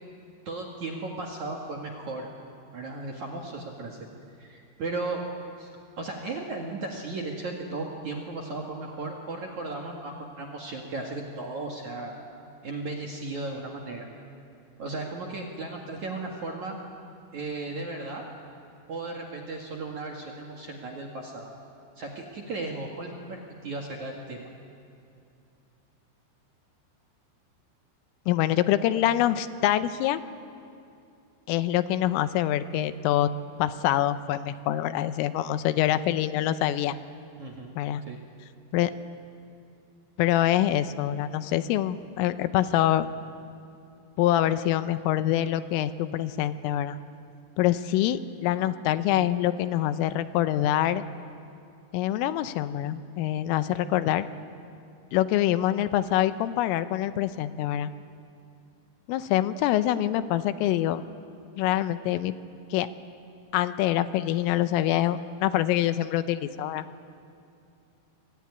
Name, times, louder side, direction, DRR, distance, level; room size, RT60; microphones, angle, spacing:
voice 1, 0.5-2.3 2.7-4.0 4.4-5.2 5.6-12.1 12.6-14.1 14.8-16.8 17.3-18.2 18.9-21.5 22.0-24.5 37.4-37.7 38.0-38.2, right 3 dB, 55° right, 0 dB, 2.3 m, -35 dB
voice 2, 28.3-30.2 31.5-33.3 33.6-37.0 37.8-38.0 38.7-38.9 40.2-43.1 44.2-47.0 47.6-51.0 51.9-54.3 55.1-57.9 59.1-61.0 61.6-62.3 62.7-62.9 63.5-66.9, left 12 dB, 80° left, 11 dB, 3.4 m, -25 dB
25.5 x 22.5 x 9.7 m, 2.6 s
omnidirectional pair, 5.9 m